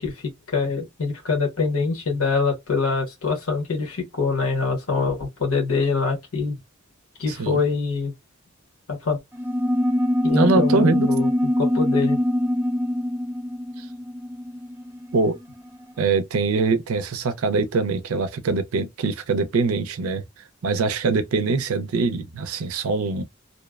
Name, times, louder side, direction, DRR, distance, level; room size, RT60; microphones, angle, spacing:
voice 1, 0.0-6.6 7.2-8.1 8.9-9.2 10.2-11.3 11.6-12.2, left 4 dB, 90° left, 1.0 m, -24 dB
sound 1, 9.3-15.3, left 1 dB, 10° right, 0.4 m, -23 dB
voice 2, 10.3-11.1 13.8-13.9 15.1-15.4 16.0-20.2 20.6-23.2, right 4 dB, 80° right, 0.4 m, -23 dB
2.6 x 2.0 x 2.3 m
head